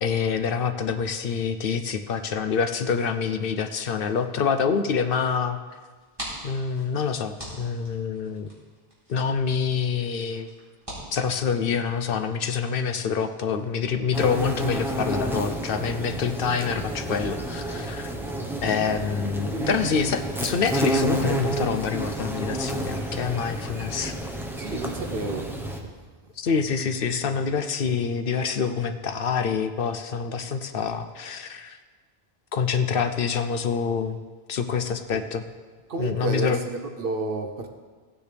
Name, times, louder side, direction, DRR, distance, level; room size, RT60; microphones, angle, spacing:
voice 1, 0.0-5.6 6.4-8.5 9.1-10.5 11.1-18.1 18.6-24.1 26.4-31.8 32.5-34.2 34.5-35.4 36.0-36.6, left 6 dB, 65° left, 8 dB, 0.8 m, -26 dB
sound 1, 5.9-12.2, equal, 25° right, 3.6 m, -43 dB
sound 2, 14.1-25.8, right 1 dB, ahead, 0.9 m, -30 dB
voice 2, 19.5-19.8 24.6-25.9 35.1-35.2 35.9-37.7, right 3 dB, 65° right, 5 dB, 1.0 m, -31 dB
15.5 x 9.4 x 3.4 m, 1.4 s
omnidirectional pair, 1.1 m